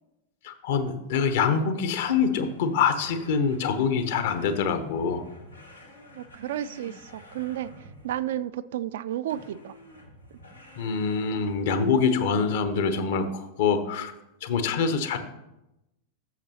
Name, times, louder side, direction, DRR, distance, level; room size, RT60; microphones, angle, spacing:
voice 1, 0.4-5.2 10.8-14.1 14.4-15.2, left 5 dB, 55° left, 10 dB, 0.8 m, -25 dB
sound 1, 1.9-8.3 9.3-11.9, equal, 85° left, 1.4 m, -47 dB
voice 2, 6.1-9.7, right 12 dB, 55° right, 15 dB, 0.3 m, -32 dB
13.0 x 6.7 x 2.9 m, 0.93 s
figure-of-eight pair, 90°, 0 cm